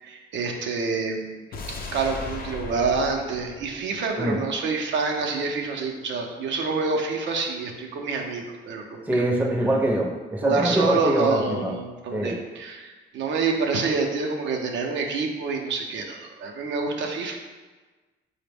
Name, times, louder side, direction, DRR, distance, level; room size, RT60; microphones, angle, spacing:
voice 1, 0.0-1.4 1.9-9.2 10.4-17.3, right 4 dB, 70° right, 1 dB, 0.5 m, -27 dB
sound 1, 1.5-4.7 5.0-5.1, left 3 dB, 45° left, 0.5 m, -37 dB
voice 2, 9.1-11.7 12.1-12.3, right 1 dB, 10° right, -1 dB, 0.5 m, -24 dB
4.0 x 2.0 x 3.4 m, 1.3 s
cardioid pair, 90°, 20 cm